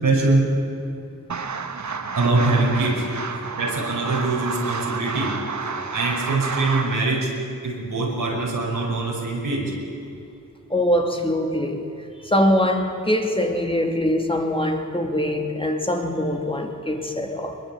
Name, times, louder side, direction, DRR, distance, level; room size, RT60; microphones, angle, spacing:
voice 1, 0.0-0.5 1.8-3.1 3.5-5.4 5.9-7.3 7.6-9.7, right 2 dB, 85° right, 5.4 m, -23 dB
sound 1, 1.3-7.0, right 5 dB, 60° right, 1.4 m, -30 dB
voice 2, 10.7-17.6, left 1 dB, 15° left, 2.9 m, -23 dB
21.5 x 21.5 x 8.8 m
cardioid pair, 55°, 32 cm